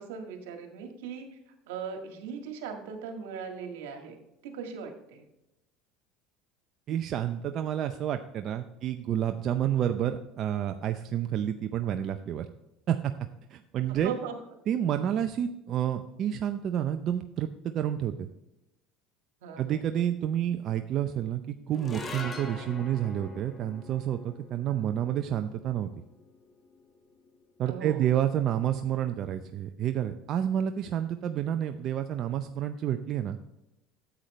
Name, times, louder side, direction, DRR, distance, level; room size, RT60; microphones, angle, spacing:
voice 1, 0.0-4.2 4.4-5.3 13.9-14.3 19.4-19.8 24.7-24.8 27.6-28.1 30.8-31.0, right 6 dB, 85° right, 4 dB, 1.7 m, -39 dB
voice 2, 6.9-12.5 12.9-13.1 13.5-14.1 14.7-18.3 19.6-25.9 27.6-33.4, right 10 dB, 50° right, 7 dB, 0.6 m, -29 dB
sound 1, 21.7-28.2, left 3 dB, 30° left, 1.5 m, -44 dB
9.7 x 8.1 x 3.2 m, 0.91 s
supercardioid pair, 95°, 0 cm